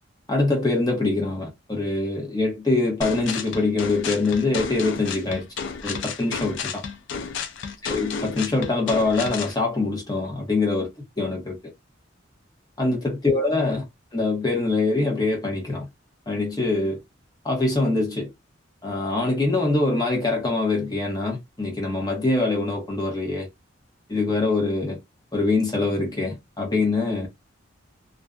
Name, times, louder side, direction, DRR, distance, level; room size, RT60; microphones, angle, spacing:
voice 1, 0.3-5.4 5.8-6.8 7.8-10.9 11.2-11.6 12.8-13.9 14.1-15.9 16.3-17.0 17.4-18.3 18.8-23.5 24.1-25.0 25.3-27.3, left 3 dB, 20° left, 0.9 m, -24 dB
sound 1, 3.0-9.6, left 5 dB, 65° left, 0.4 m, -32 dB
2.5 x 2.3 x 2.3 m
head